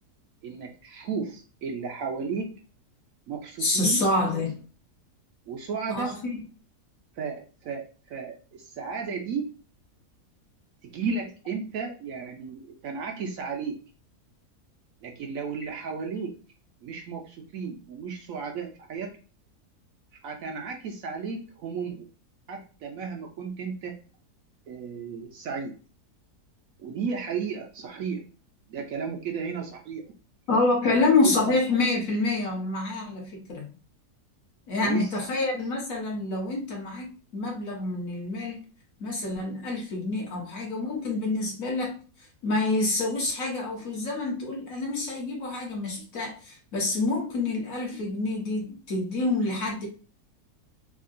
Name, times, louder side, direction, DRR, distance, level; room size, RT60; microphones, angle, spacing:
voice 1, 0.4-2.6 3.3-4.0 5.5-6.2 7.2-9.5 10.8-13.7 15.0-16.4 16.8-19.1 20.2-22.1 22.5-24.0 24.7-25.7 26.8-28.2 28.7-30.0 30.9-31.6 34.8-35.2, right 5 dB, 65° right, 1.0 m, -34 dB
voice 2, 3.6-4.6 5.9-6.4 30.5-33.7 34.7-38.6 39.0-42.0 42.4-49.9, left 2 dB, 60° left, 1.3 m, -27 dB
3.6 x 2.4 x 2.5 m
omnidirectional pair, 1.7 m